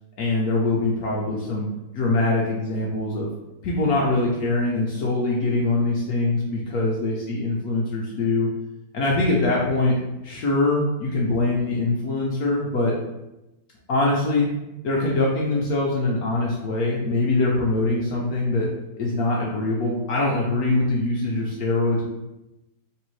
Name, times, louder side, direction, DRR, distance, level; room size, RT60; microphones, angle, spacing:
voice 1, 0.2-1.7 1.9-3.3 3.6-8.5 8.9-10.0 10.2-12.9 13.9-14.5 14.8-18.7 19.0-22.0, left 2 dB, 65° left, -3 dB, 1.0 m, -23 dB
3.7 x 3.3 x 3.1 m, 0.95 s
omnidirectional pair, 2.1 m